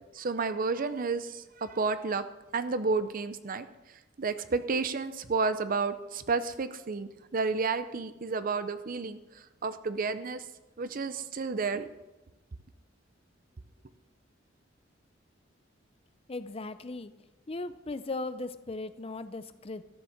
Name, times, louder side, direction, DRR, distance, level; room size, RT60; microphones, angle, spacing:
voice 1, 0.1-2.2 2.5-3.7 4.2-9.2 9.6-10.4 10.8-11.9, right 4 dB, 50° right, 12 dB, 0.6 m, -31 dB
voice 2, 16.3-17.1 17.5-19.8, left 2 dB, 30° left, 12 dB, 0.6 m, -37 dB
13.0 x 7.3 x 6.4 m, 1.1 s
head